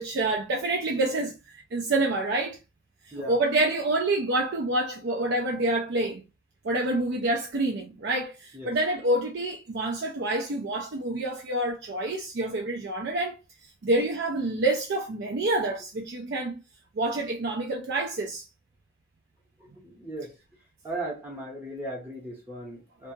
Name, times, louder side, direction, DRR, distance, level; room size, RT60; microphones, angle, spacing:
voice 1, 0.0-2.6 3.1-6.2 6.6-13.4 13.8-16.6 16.9-18.5, right 2 dB, 50° right, 0.4 m, -27 dB
voice 2, 19.6-20.3 20.8-23.1, right 1 dB, 10° right, 0.8 m, -37 dB
2.7 x 2.3 x 2.7 m
head